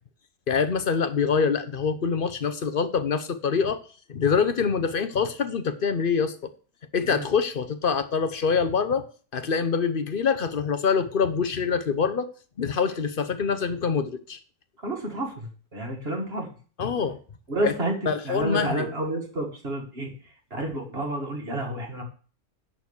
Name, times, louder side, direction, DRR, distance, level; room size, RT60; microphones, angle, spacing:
voice 1, 0.5-3.8 4.1-6.5 6.9-9.1 9.3-12.3 12.6-14.4 16.8-17.2 17.6-17.8 18.1-18.9, left 6 dB, 45° left, 11 dB, 0.7 m, -25 dB
voice 2, 14.8-16.5 17.5-17.9 18.2-20.1 20.5-22.0, right 1 dB, 35° right, 2 dB, 2.2 m, -30 dB
11.0 x 4.4 x 7.1 m, 0.40 s
omnidirectional pair, 1.9 m